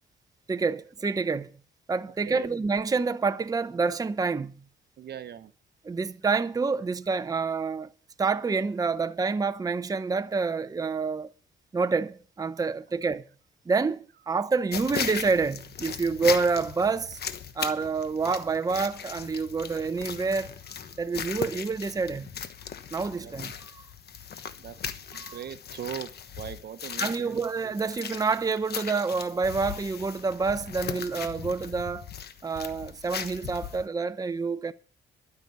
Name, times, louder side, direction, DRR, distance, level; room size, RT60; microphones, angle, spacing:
voice 1, 0.5-1.5 1.9-4.6 5.8-7.9 8.2-11.3 11.7-13.3 13.7-17.2 17.6-20.6 21.0-22.3 22.9-23.8 25.2-25.4 27.0-32.1 32.4-34.7, right 4 dB, 20° right, 0.6 m, -28 dB
voice 2, 5.0-5.5 20.9-21.0 23.2-23.3 24.6-24.8 25.1-26.1 26.4-27.7, right 9 dB, 55° right, 0.8 m, -40 dB
sound 1, 14.7-33.9, left 7 dB, 55° left, 1.2 m, -38 dB
12.0 x 6.0 x 9.2 m
cardioid pair, 90°, 20 cm